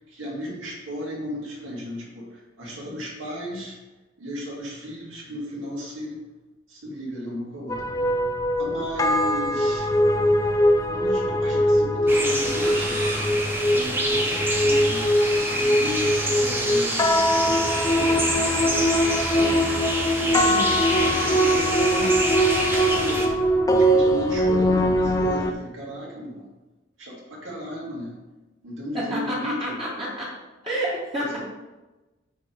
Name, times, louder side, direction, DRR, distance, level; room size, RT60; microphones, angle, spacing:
voice 1, 0.0-3.8 4.2-6.2 6.7-7.9 8.5-9.9 10.9-13.0 13.7-15.1 15.5-19.6 20.1-20.4 20.9-26.5 27.0-28.2 28.6-29.8 31.2-31.4, equal, 90° right, -4 dB, 2.4 m, -35 dB
sound 1, 7.7-25.5, equal, 20° left, 0.4 m, -22 dB
sound 2, 12.1-23.3, right 1 dB, 10° right, 0.9 m, -27 dB
sound 3, 12.4-15.0, right 2 dB, 45° right, 2.1 m, -39 dB
voice 2, 20.4-20.9 28.9-30.3 30.6-31.4, equal, 25° right, -7 dB, 1.3 m, -29 dB
8.3 x 3.4 x 4.7 m, 1.1 s
head